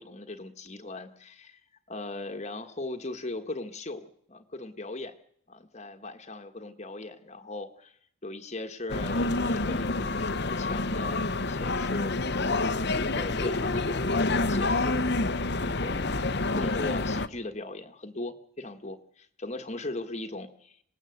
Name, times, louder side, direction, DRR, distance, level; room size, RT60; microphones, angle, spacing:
voice 1, 0.0-1.6 1.9-5.1 5.5-16.2 16.5-20.8, left 2 dB, 35° left, 7 dB, 1.5 m, -39 dB
sound 1, 8.9-17.3, left 2 dB, 55° left, 1.0 m, -28 dB
27.0 x 19.0 x 7.9 m, 0.69 s
head